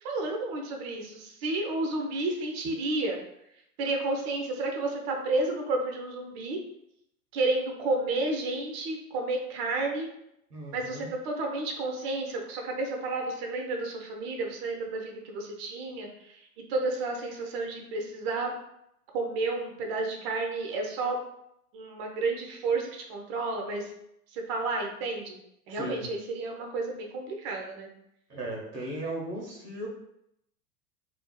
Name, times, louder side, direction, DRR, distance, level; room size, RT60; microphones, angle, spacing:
voice 1, 0.0-3.2 3.8-6.6 7.3-10.1 10.7-16.4 16.7-18.6 19.1-21.2 21.7-23.9 24.3-25.4 25.7-27.9, right 2 dB, 40° right, 2 dB, 0.5 m, -31 dB
voice 2, 10.5-11.1 25.7-26.1 28.3-29.9, right 1 dB, 85° right, -2 dB, 0.8 m, -37 dB
2.4 x 2.3 x 2.2 m, 0.78 s
figure-of-eight pair, 85°, 47 cm